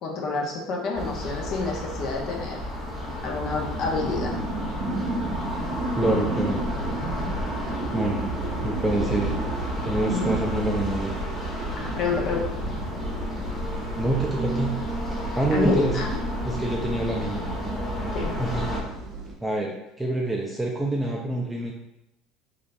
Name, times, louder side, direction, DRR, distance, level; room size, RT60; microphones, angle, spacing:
voice 1, 0.0-2.6 3.2-4.3 4.9-5.0 10.1-10.4 11.7-12.5 15.5-16.2 18.1-18.4, left 4 dB, 50° left, 0 dB, 0.7 m, -28 dB
sound 1, 0.9-18.8, equal, 10° left, 1.1 m, -32 dB
sound 2, 3.7-19.3, right 2 dB, 45° right, 0.6 m, -33 dB
voice 2, 6.0-6.6 7.9-8.2 8.6-9.3 9.8-11.1 14.0-14.7 15.3-15.9 16.4-17.4 18.4-18.8 19.4-21.7, right 1 dB, 5° right, -1 dB, 0.4 m, -26 dB
3.7 x 3.2 x 2.6 m, 0.88 s
cardioid pair, 140°, 0 cm